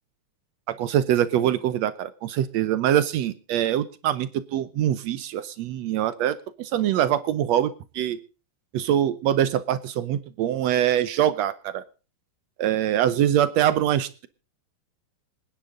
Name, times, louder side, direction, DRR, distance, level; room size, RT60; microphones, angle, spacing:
voice 1, 0.7-8.2 8.7-11.8 12.6-14.3, right 11 dB, 85° right, 14 dB, 1.5 m, -24 dB
26.5 x 10.0 x 3.7 m, 0.36 s
omnidirectional pair, 4.1 m